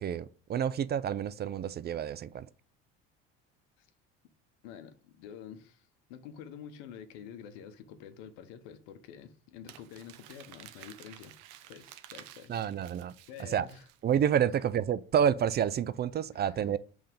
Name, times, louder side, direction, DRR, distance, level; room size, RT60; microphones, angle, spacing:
voice 1, 0.0-2.5 12.5-13.1 13.4-13.7 14.0-16.8, right 9 dB, 35° right, 0.4 m, -29 dB
voice 2, 4.6-11.3 11.7-12.5 13.3-13.8 16.3-16.7, left 8 dB, 80° left, 0.9 m, -48 dB
Crumpling crinkling, 9.7-14.2, right 13 dB, 75° right, 0.7 m, -52 dB
5.7 x 3.5 x 5.2 m
supercardioid pair, 80°, 31 cm